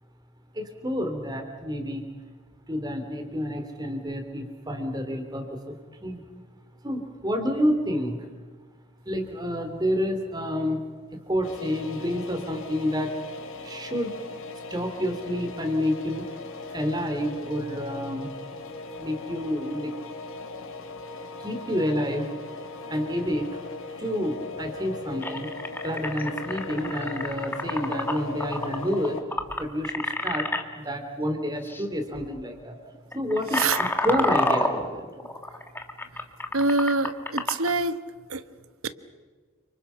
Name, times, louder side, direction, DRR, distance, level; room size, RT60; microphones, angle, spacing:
voice 1, 0.5-2.1 2.7-6.2 6.8-8.3 9.0-10.8 11.3-13.1 13.6-14.2 14.7-16.3 16.7-18.3 19.0-19.9 21.4-22.3 22.9-23.6 24.0-25.5 25.8-29.2 29.6-30.5 30.8-32.8 33.1-35.0, equal, 20° right, 5 dB, 3.2 m, -29 dB
sound 1, 11.4-29.2, left 3 dB, 65° left, 2.8 m, -39 dB
sound 2, 25.2-30.6 31.6-31.8 32.1-32.4 33.0-37.7, left 2 dB, 10° left, 1.6 m, -29 dB
voice 2, 36.5-38.0 38.3-38.4 38.8-38.9, right 3 dB, 75° right, 12 dB, 1.3 m, -25 dB
30.0 x 26.0 x 5.8 m, 1.5 s
head